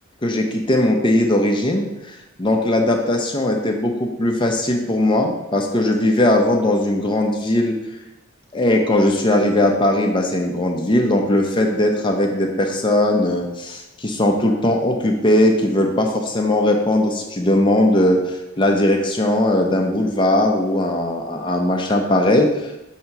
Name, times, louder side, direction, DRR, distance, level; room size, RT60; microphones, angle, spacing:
voice 1, 0.2-7.8 8.5-22.8, left 1 dB, 25° left, 2 dB, 0.6 m, -19 dB
6.5 x 2.8 x 5.8 m, 0.94 s
head